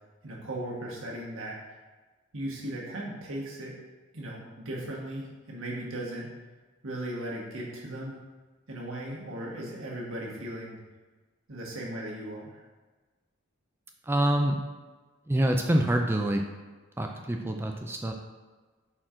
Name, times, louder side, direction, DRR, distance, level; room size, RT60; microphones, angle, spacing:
voice 1, 0.2-1.6 2.3-3.8 4.1-6.3 6.8-8.2 8.7-10.8 11.5-12.6, right 1 dB, 75° right, -3 dB, 1.4 m, -37 dB
voice 2, 14.1-14.6 15.3-16.4 17.0-18.1, right 1 dB, 10° right, 3 dB, 0.3 m, -26 dB
5.9 x 4.4 x 3.7 m, 1.3 s
head